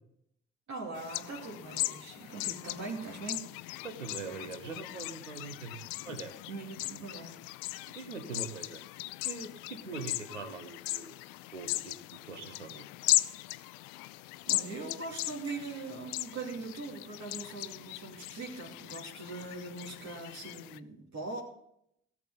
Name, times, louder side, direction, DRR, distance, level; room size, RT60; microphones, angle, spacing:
voice 1, 0.7-3.5 5.5-5.7 6.5-7.4 14.5-21.4, right 3 dB, 50° right, -1 dB, 2.7 m, -41 dB
sound 1, 0.9-20.8, left 19 dB, 65° left, 0.5 m, -38 dB
voice 2, 3.8-5.8 6.0-6.3 7.9-8.8 9.2-11.1 11.5-12.0 12.3-12.9, right 4 dB, 90° right, 9 dB, 1.0 m, -42 dB
17.0 x 7.4 x 3.9 m, 0.74 s
figure-of-eight pair, 40°, 35 cm